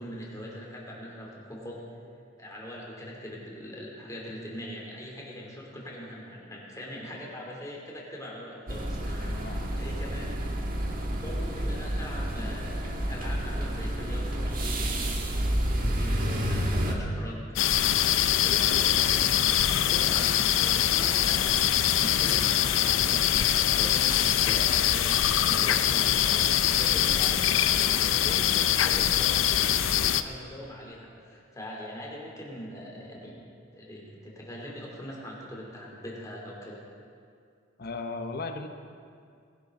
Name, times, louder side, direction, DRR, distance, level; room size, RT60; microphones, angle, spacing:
voice 1, 0.0-1.9 2.4-9.4 9.7-10.3 11.2-15.2 15.8-17.6 18.2-29.4 30.2-33.3 33.7-36.9, equal, 15° left, -4 dB, 3.0 m, -41 dB
sound 1, 8.7-16.9, equal, 45° right, 1.4 m, -30 dB
voice 2, 9.3-9.7 37.8-38.7, left 3 dB, 55° left, 6 dB, 1.0 m, -36 dB
sound 2, 17.6-30.2, left 10 dB, 80° left, 0.5 m, -23 dB
20.5 x 11.5 x 3.9 m, 2.3 s
head